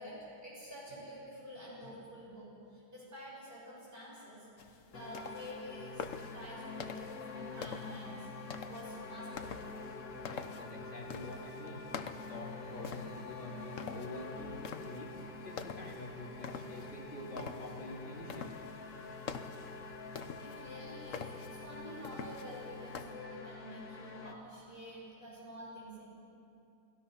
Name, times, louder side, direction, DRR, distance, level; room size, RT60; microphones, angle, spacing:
voice 1, 0.0-8.3 8.7-9.6 20.2-26.1, equal, 30° right, -6 dB, 8.1 m, -48 dB
sound 1, 4.6-23.0, left 6 dB, 55° left, 1.1 m, -47 dB
sound 2, 4.9-24.3, left 3 dB, 75° left, 2.1 m, -46 dB
voice 2, 10.3-18.4, left 1 dB, 25° left, -5 dB, 4.3 m, -47 dB
29.0 x 19.0 x 5.7 m, 2.6 s
omnidirectional pair, 1.9 m